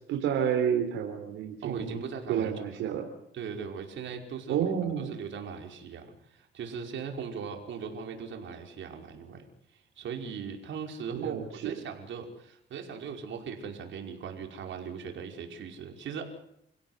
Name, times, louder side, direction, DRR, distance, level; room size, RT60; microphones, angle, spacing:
voice 1, 0.1-2.0 2.3-3.1 4.5-5.1 11.1-11.7, right 8 dB, 90° right, 3 dB, 4.1 m, -30 dB
voice 2, 1.6-2.8 3.3-4.6 5.0-6.0 6.3-9.4 9.7-16.3, right 6 dB, 70° right, 3 dB, 5.4 m, -39 dB
30.0 x 16.5 x 8.2 m, 0.75 s
cardioid pair, 90°, 20 cm